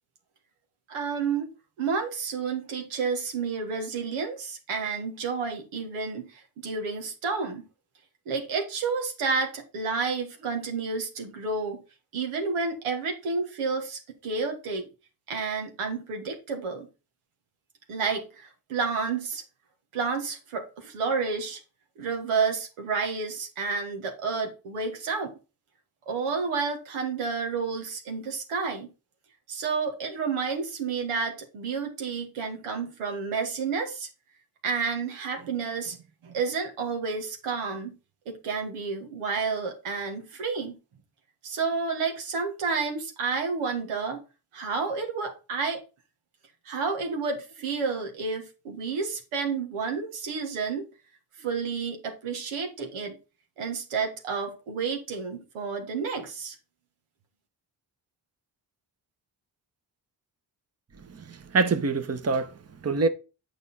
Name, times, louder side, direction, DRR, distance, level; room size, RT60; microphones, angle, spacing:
voice 1, 0.9-1.5 1.8-7.7 8.2-11.8 12.1-14.8 15.3-16.9 17.9-19.4 19.9-21.6 22.0-25.4 26.1-28.9 29.5-34.1 34.6-36.0 36.2-38.0 38.2-40.8 41.4-44.2 44.5-45.8 46.6-50.8 51.4-53.2 53.6-56.5, right 5 dB, 90° right, 1.6 m, -30 dB
voice 2, 61.1-63.1, right 4 dB, 30° right, 1.1 m, -26 dB
8.2 x 4.9 x 4.1 m
supercardioid pair, 45°, 49 cm